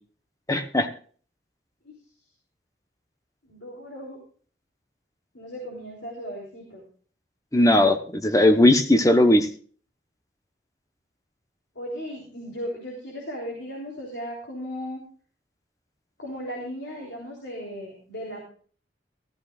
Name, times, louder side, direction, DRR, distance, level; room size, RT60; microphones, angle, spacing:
voice 1, 0.5-0.9 7.5-9.5, left 1 dB, 20° left, 7 dB, 1.0 m, -18 dB
voice 2, 3.5-4.2 5.3-6.8 11.8-15.0 16.2-18.4, equal, 70° left, -2 dB, 3.5 m, -36 dB
15.5 x 14.0 x 2.5 m, 0.43 s
head